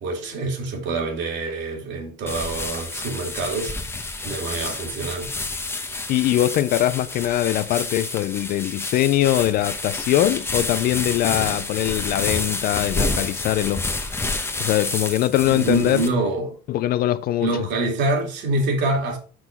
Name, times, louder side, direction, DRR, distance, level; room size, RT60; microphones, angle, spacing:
voice 1, 0.0-5.3 15.5-16.6 17.4-19.2, right 2 dB, 60° right, 2.5 m, -26 dB
sound 1, 2.3-16.1, left 2 dB, 10° left, 0.9 m, -29 dB
voice 2, 6.1-13.8 14.6-16.0 16.7-17.5, left 13 dB, 45° left, 0.4 m, -22 dB
6.2 x 6.0 x 3.6 m
cardioid pair, 160°, 21 cm